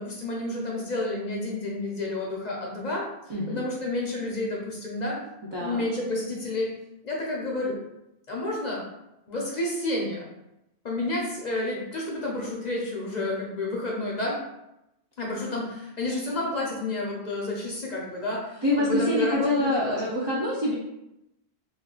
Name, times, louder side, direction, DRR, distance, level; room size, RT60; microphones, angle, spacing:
voice 1, 0.0-3.1 3.5-5.2 5.6-6.7 7.0-7.8 8.3-8.8 9.3-10.3 10.8-14.4 15.2-20.0, left 2 dB, 50° left, -3 dB, 0.6 m, -30 dB
voice 2, 5.5-5.8 18.6-20.7, left 1 dB, 45° right, -6 dB, 0.3 m, -25 dB
3.5 x 2.4 x 2.3 m, 0.88 s
omnidirectional pair, 1.1 m